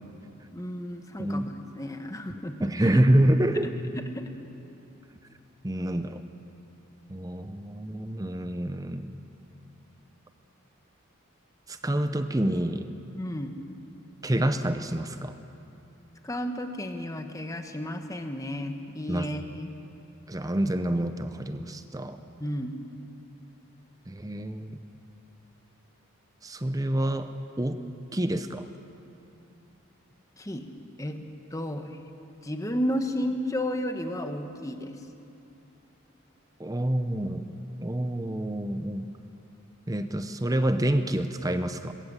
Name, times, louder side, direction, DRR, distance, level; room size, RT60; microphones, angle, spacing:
voice 1, 0.5-2.7 4.1-4.3 13.1-13.5 16.2-19.7 22.4-22.8 30.4-30.7 31.0-31.2 31.5-32.0 32.4-35.0, equal, 15° left, 6 dB, 1.1 m, -32 dB
voice 2, 2.3-3.7 5.6-6.2 7.1-9.2 11.7-12.9 14.2-15.4 19.1-19.3 20.3-22.2 24.1-24.8 26.4-27.3 27.6-27.8 28.1-28.7 36.6-37.5 37.8-39.1 39.9-41.9, right 1 dB, 15° right, 9 dB, 0.7 m, -27 dB
20.5 x 17.5 x 7.4 m, 2.9 s
head